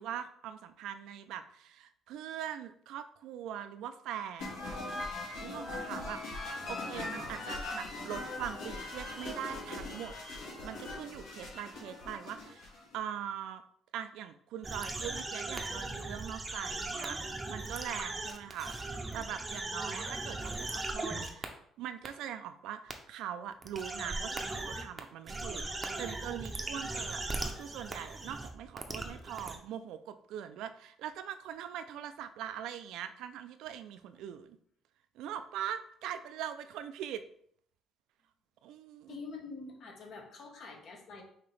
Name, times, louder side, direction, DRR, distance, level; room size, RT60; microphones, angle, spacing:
voice 1, 0.0-4.8 5.4-6.2 6.7-10.1 10.6-13.6 13.9-27.2 27.5-34.6 35.1-37.3 38.6-39.2, right 9 dB, 80° right, 10 dB, 0.4 m, -42 dB
sound 1, 4.4-13.0, left 2 dB, 75° left, 1.7 m, -40 dB
sound 2, 14.6-21.5 22.0-22.1 22.9-23.0 23.6-25.0 25.3-29.6, right 2 dB, 20° right, 0.6 m, -38 dB
voice 2, 39.1-41.2, left 4 dB, 60° left, 2 dB, 1.2 m, -46 dB
5.5 x 2.9 x 3.3 m, 0.64 s
cardioid pair, 105°, 0 cm